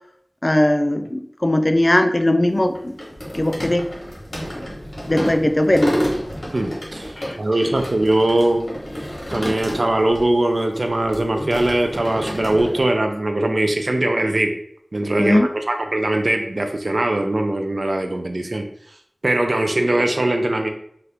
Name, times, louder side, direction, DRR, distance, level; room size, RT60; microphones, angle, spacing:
voice 1, 0.4-2.9 3.3-3.9 5.1-6.0 7.2-7.4 15.2-15.5, left 1 dB, 40° left, 7 dB, 0.3 m, -19 dB
sound 1, 2.5-10.2 10.5-12.8, equal, 60° left, 1.2 m, -30 dB
voice 2, 6.5-8.7 9.3-14.5 14.9-18.6 19.2-20.7, right 1 dB, 70° right, 4 dB, 0.3 m, -21 dB
2.8 x 2.4 x 3.3 m, 0.67 s
wide cardioid pair, 45°, 0 cm